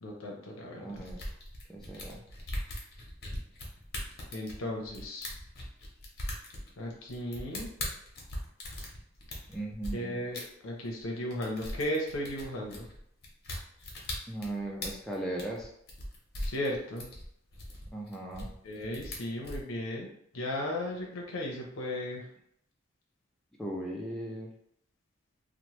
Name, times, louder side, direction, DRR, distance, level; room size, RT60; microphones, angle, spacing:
voice 1, 0.0-1.0 4.3-5.3 6.8-7.7 9.9-12.9 16.4-17.1 18.6-20.1 20.3-22.3, left 1 dB, 85° left, -1 dB, 0.6 m, -35 dB
voice 2, 0.7-1.2 1.7-2.2 9.5-10.2 14.3-15.7 17.9-18.5 23.6-24.5, right 1 dB, ahead, -3 dB, 0.3 m, -37 dB
sound 1, 0.9-9.9 10.3-10.4 10.9-11.1 11.3-19.6, left 1 dB, 50° left, 0.8 m, -40 dB
2.9 x 2.1 x 3.0 m, 0.72 s
head